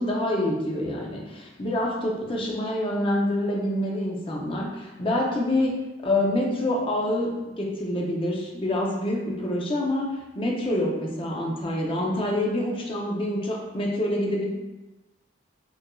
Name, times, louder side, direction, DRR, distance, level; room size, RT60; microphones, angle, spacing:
voice 1, 0.0-14.5, left 1 dB, 30° left, -1 dB, 0.5 m, -26 dB
4.6 x 2.6 x 2.3 m, 1.1 s
head